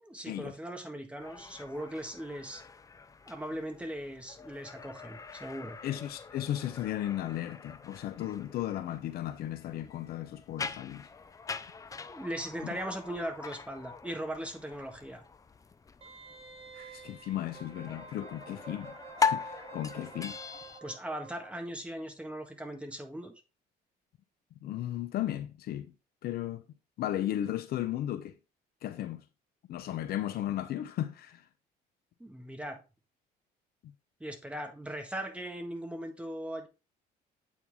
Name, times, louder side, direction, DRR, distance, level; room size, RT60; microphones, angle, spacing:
voice 1, 0.1-2.6 3.3-5.8 12.1-15.2 20.8-23.3 32.2-32.8 34.2-36.7, right 1 dB, 5° right, 1.5 m, -39 dB
sound 1, 1.2-20.8, left 5 dB, 20° left, 0.5 m, -40 dB
voice 2, 5.8-11.1 12.7-12.9 16.7-20.4 24.6-25.9 26.2-26.6 27.0-28.3 28.8-29.2 29.7-31.4, left 12 dB, 65° left, 0.7 m, -35 dB
Wind instrument woodwind instrument, 16.0-21.6 21.9-22.0, right 5 dB, 35° right, 1.3 m, -50 dB
8.3 x 4.6 x 3.5 m
cardioid pair, 110°, 17 cm